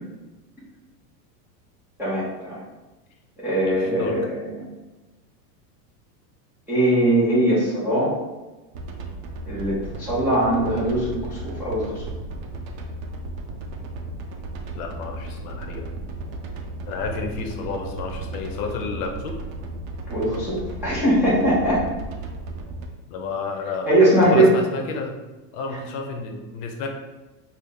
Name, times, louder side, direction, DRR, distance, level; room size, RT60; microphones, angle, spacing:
voice 1, 2.0-2.6 3.4-4.6 6.7-8.1 9.5-12.0 20.1-21.8 23.9-24.5, right 1 dB, 5° right, -12 dB, 0.3 m, -21 dB
voice 2, 3.6-4.1 14.7-15.9 16.8-19.4 23.1-23.9 24.2-25.1 25.5-26.9, left 4 dB, 55° left, 3 dB, 0.7 m, -31 dB
sound 1, 8.7-22.8, right 2 dB, 55° right, 0.6 m, -35 dB
3.8 x 2.0 x 3.2 m, 1.1 s
supercardioid pair, 135°, 49 cm